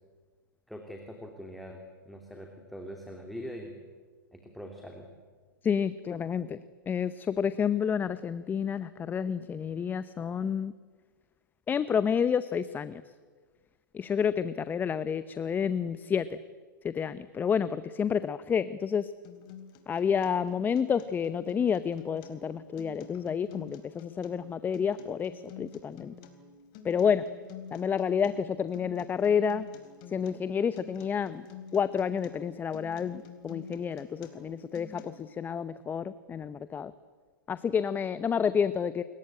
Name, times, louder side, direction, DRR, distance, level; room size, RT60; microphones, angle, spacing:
voice 1, 0.7-3.8 4.3-5.1, equal, ahead, 2 dB, 3.1 m, -43 dB
voice 2, 5.6-6.6 6.9-10.7 11.7-13.0 13.9-16.4 16.8-19.1 19.9-26.1 26.8-27.3 27.7-29.7 30.1-31.4 31.7-36.9 37.5-39.0, left 7 dB, 15° left, 15 dB, 0.8 m, -29 dB
Acoustic guitar, 19.2-35.2, left 6 dB, 40° left, 4.0 m, -49 dB
29.0 x 22.0 x 8.8 m, 1.5 s
hypercardioid pair, 110°, 11 cm